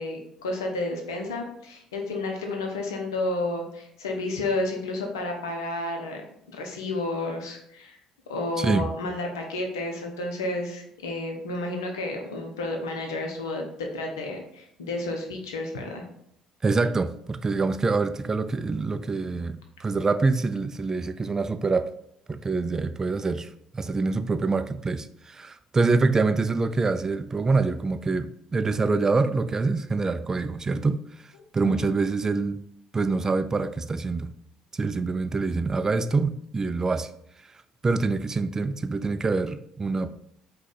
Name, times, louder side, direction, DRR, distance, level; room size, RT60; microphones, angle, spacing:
voice 1, 0.0-6.2 6.5-8.0 8.3-16.0 31.6-31.9, left 2 dB, 75° left, 0.6 m, -31 dB
voice 2, 8.6-8.9 16.6-21.9 22.3-32.6 32.9-34.3 34.7-37.1 37.8-40.1, right 3 dB, 25° right, 0.3 m, -25 dB
4.7 x 2.3 x 4.0 m
figure-of-eight pair, 50°, 2 cm